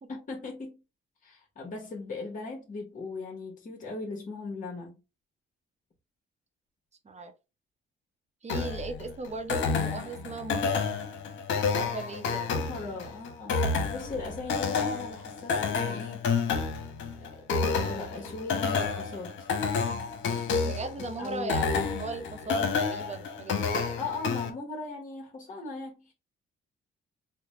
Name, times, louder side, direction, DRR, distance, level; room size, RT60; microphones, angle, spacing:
voice 1, 0.1-0.8 1.2-5.0 12.5-16.2 17.2-19.5 21.2-21.5 24.0-26.1, left 3 dB, 40° left, 1.1 m, -38 dB
voice 2, 8.4-10.8 11.8-12.5 20.6-23.9, right 3 dB, 35° right, 0.8 m, -38 dB
sound 1, 8.5-24.5, left 5 dB, 75° left, 0.9 m, -30 dB
4.1 x 2.1 x 3.0 m
cardioid pair, 90°, 20 cm